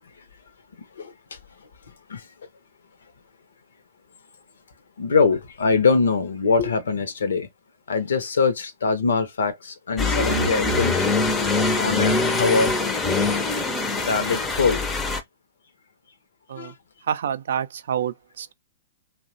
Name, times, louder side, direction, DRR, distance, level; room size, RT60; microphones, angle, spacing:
voice 1, 0.8-1.7 2.1-2.3 5.0-7.5 7.9-11.0 11.7-12.7 14.0-14.8 16.6-16.7, left 4 dB, 70° left, 0.6 m, -23 dB
sound 1, 10.0-15.2, left 3 dB, 15° left, 0.5 m, -23 dB
voice 2, 17.1-18.5, right 8 dB, 60° right, 0.3 m, -28 dB
2.8 x 2.1 x 2.5 m
figure-of-eight pair, 110°, 0 cm